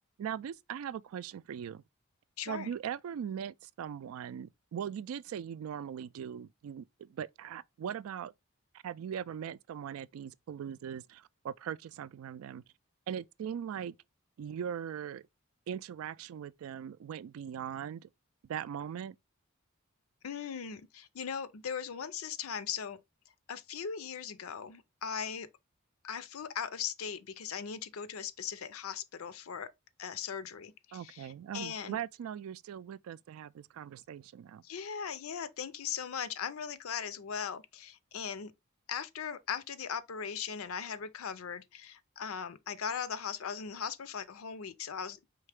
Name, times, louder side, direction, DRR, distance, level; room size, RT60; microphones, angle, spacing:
voice 1, 0.2-1.8 2.5-8.3 8.8-12.6 13.1-13.9 14.4-15.2 15.7-18.1 18.5-19.1 30.9-34.6, right 8 dB, 80° right, 0.3 m, -40 dB
voice 2, 2.4-2.7 20.2-23.0 23.5-25.5 26.0-29.7 30.0-32.0 34.6-38.5 38.9-45.2, left 7 dB, 85° left, 0.5 m, -39 dB
4.6 x 3.2 x 3.3 m
head